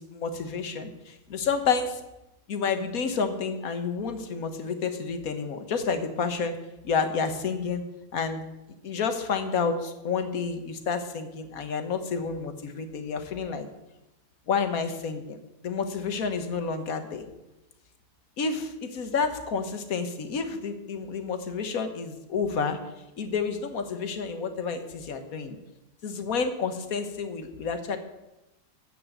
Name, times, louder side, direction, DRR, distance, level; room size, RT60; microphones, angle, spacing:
voice 1, 0.1-2.0 2.5-6.6 6.8-7.8 8.1-8.4 8.8-13.7 14.5-15.4 15.6-17.2 18.4-22.8 23.2-25.6 26.0-28.0, left 5 dB, 55° left, 8 dB, 1.7 m, -29 dB
14.5 x 5.5 x 9.0 m, 0.97 s
omnidirectional pair, 1.8 m